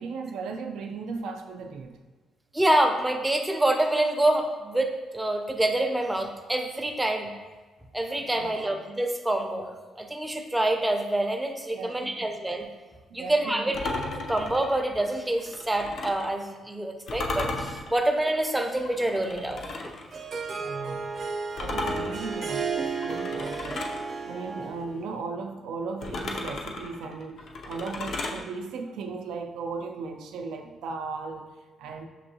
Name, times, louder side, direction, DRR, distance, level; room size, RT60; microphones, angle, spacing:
voice 1, 0.0-2.0 8.3-8.7 11.7-12.3 13.1-13.8 20.5-21.1 21.6-23.8 24.2-32.1, right 4 dB, 85° right, 3 dB, 0.4 m, -37 dB
voice 2, 2.5-7.3 7.9-12.7 13.1-13.8 14.3-19.9, right 1 dB, 10° right, 3 dB, 0.5 m, -26 dB
sound 1, 13.7-16.3 17.1-20.1 21.6-24.0 26.0-28.4, left 2 dB, 60° left, 0.5 m, -35 dB
Harp, 19.7-25.0, right 4 dB, 45° right, 0.7 m, -33 dB
6.5 x 2.6 x 2.7 m, 1.3 s
cardioid pair, 90°, 0 cm